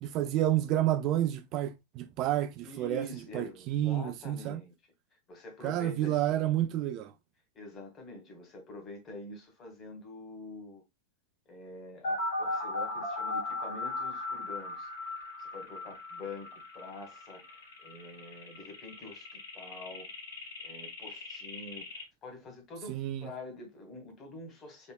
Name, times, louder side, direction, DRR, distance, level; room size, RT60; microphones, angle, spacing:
voice 1, 0.0-3.1 3.3-4.6 5.6-7.1 22.9-23.3, right 13 dB, 40° right, 0.4 m, -30 dB
voice 2, 2.6-4.7 5.3-6.4 7.5-10.8 11.5-14.9 15.2-20.1 20.6-24.9, left 2 dB, 30° left, 2.0 m, -46 dB
sound 1, 12.0-22.0, left 2 dB, 60° left, 2.7 m, -37 dB
4.8 x 4.3 x 2.3 m
figure-of-eight pair, 90°, 0 cm